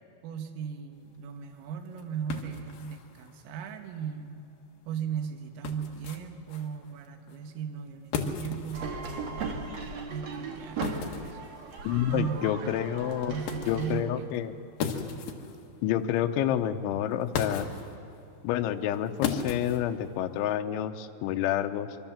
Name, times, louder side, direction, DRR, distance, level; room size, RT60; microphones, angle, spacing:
voice 1, 0.2-4.5 4.9-9.7 10.1-11.4 12.1-14.3, right 7 dB, 90° right, 5 dB, 3.9 m, -37 dB
sound 1, 0.9-20.5, left 6 dB, 60° left, 2.6 m, -39 dB
sound 2, 8.7-14.0, right 4 dB, 50° right, 2.0 m, -37 dB
voice 2, 11.8-13.4 13.7-14.5 15.8-17.7 18.4-22.0, left 11 dB, 75° left, 7 dB, 3.1 m, -29 dB
26.0 x 23.5 x 7.3 m, 2.5 s
omnidirectional pair, 5.7 m